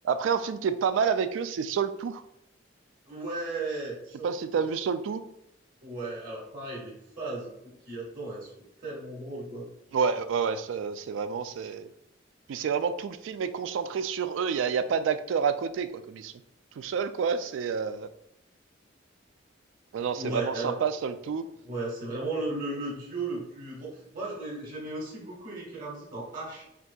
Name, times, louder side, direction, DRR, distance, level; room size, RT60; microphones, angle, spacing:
voice 1, 0.0-2.2 4.2-5.2 9.9-11.9 12.5-16.3 16.8-18.1 19.9-21.4, right 6 dB, 90° right, 11 dB, 0.3 m, -29 dB
voice 2, 3.1-4.6 5.8-7.5 7.9-8.5 8.8-9.7 20.2-20.7 21.6-26.7, right 2 dB, 50° right, -3 dB, 1.4 m, -35 dB
5.8 x 2.7 x 2.2 m, 0.80 s
head